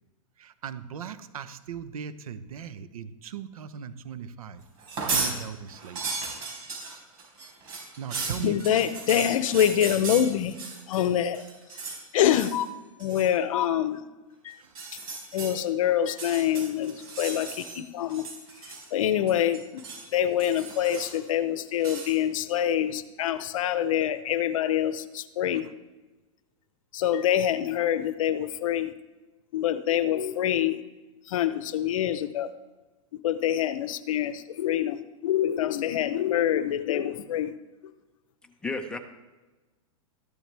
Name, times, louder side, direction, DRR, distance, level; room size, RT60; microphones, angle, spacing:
voice 1, 0.4-4.6 5.1-6.1 8.0-8.6 14.6-14.7, right 7 dB, 85° right, 12 dB, 0.9 m, -38 dB
sound 1, 4.8-5.3 5.7-11.0 11.3-12.0 12.3-12.6 13.0-13.3 14.6-15.5 16.1-17.8 18.1-19.0 19.3-20.0 20.4-21.3 21.8-22.1, right 4 dB, 40° right, 4.8 m, -35 dB
voice 2, 8.4-10.5 10.9-11.4 12.1-12.7 13.0-14.0 14.4-14.5 15.3-18.3 18.9-19.8 20.1-25.7 26.9-28.9 29.5-30.8 31.3-32.5 33.2-37.5, left 10 dB, 70° left, 14 dB, 0.8 m, -25 dB
voice 3, 38.4-39.0, left 3 dB, 5° left, 5 dB, 0.9 m, -33 dB
14.0 x 12.0 x 3.4 m, 1.2 s
supercardioid pair, 150°, 18 cm